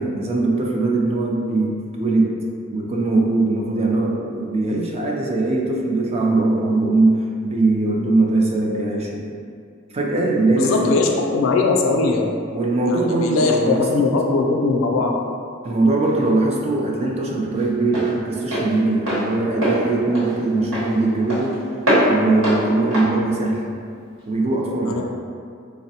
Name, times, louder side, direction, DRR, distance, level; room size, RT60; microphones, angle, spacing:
voice 1, 0.0-2.3 2.7-9.2 9.9-11.0 12.5-13.7 15.6-21.6 22.0-23.6 24.3-25.0, right 2 dB, 30° right, -1 dB, 0.3 m, -21 dB
voice 2, 10.6-12.3 12.9-15.2 24.8-25.0, left 3 dB, 65° left, 1 dB, 0.3 m, -20 dB
Walk footsteps, 15.6-24.3, equal, 80° right, 1.1 m, -25 dB
3.4 x 2.0 x 2.7 m, 2.3 s
head